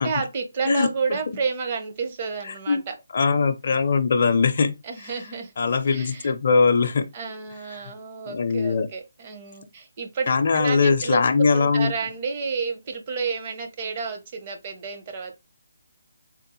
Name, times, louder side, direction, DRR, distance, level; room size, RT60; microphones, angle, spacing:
voice 1, 0.0-2.9 4.8-5.5 5.9-6.3 7.1-11.2 11.5-15.4, right 5 dB, 30° right, 0.8 m, -30 dB
voice 2, 3.1-4.7 5.6-7.1 8.3-8.9 10.3-11.9, left 4 dB, 50° left, 0.5 m, -21 dB
3.7 x 2.1 x 3.0 m
figure-of-eight pair, 155°, 0 cm